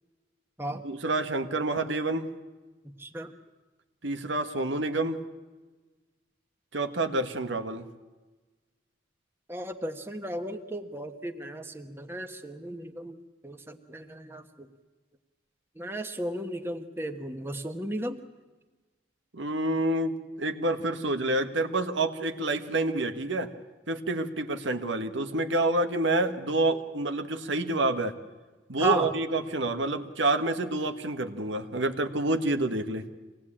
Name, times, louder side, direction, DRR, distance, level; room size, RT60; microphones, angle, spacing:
voice 1, 0.8-2.3 4.0-5.2 6.7-7.9 19.3-23.5 23.9-28.1 28.7-33.0, right 2 dB, 85° right, 7 dB, 1.6 m, -28 dB
voice 2, 3.0-3.3 9.5-13.2 13.4-14.7 15.8-18.2 28.8-29.1, right 2 dB, 10° right, 5 dB, 1.3 m, -34 dB
25.5 x 18.5 x 8.8 m, 1.3 s
head